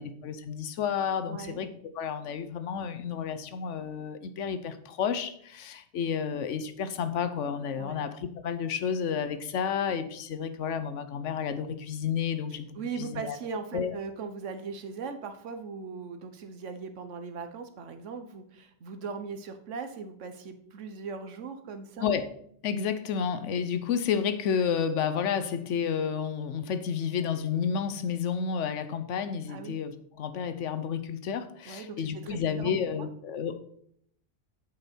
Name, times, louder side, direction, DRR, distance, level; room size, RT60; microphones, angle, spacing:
voice 1, 0.0-1.7 2.0-13.4 13.7-14.0 22.0-22.2 22.6-33.6, left 7 dB, 80° left, 11 dB, 1.0 m, -31 dB
voice 2, 1.3-1.6 7.8-8.0 12.7-22.1 29.5-29.8 31.6-33.1, right 5 dB, 80° right, 8 dB, 1.2 m, -39 dB
8.0 x 5.5 x 4.3 m, 0.67 s
omnidirectional pair, 1.2 m